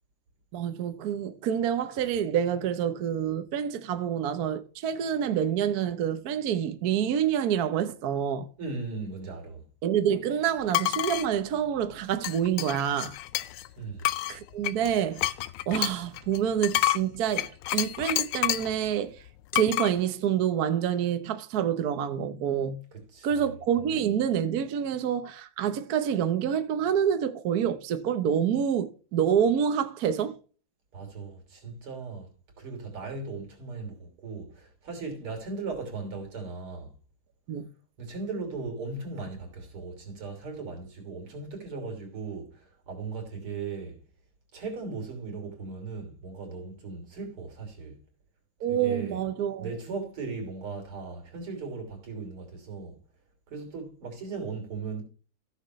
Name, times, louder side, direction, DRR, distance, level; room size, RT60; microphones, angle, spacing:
voice 1, 0.5-8.5 9.8-13.2 14.3-15.2 15.7-19.2 19.5-22.8 23.2-30.4 37.5-37.7 48.6-49.7, right 9 dB, 60° right, 1.1 m, -27 dB
voice 2, 8.6-9.6 13.8-14.2 22.9-23.5 30.9-32.3 32.6-36.9 38.0-44.0 44.5-48.0 48.7-49.2 49.6-53.0 53.5-55.0, right 4 dB, 80° right, 4.0 m, -38 dB
sound 1, 10.7-11.3 12.2-13.7 14.0-18.8 19.5-19.9, left 15 dB, 80° left, 1.5 m, -29 dB
15.0 x 6.5 x 3.1 m
omnidirectional pair, 2.3 m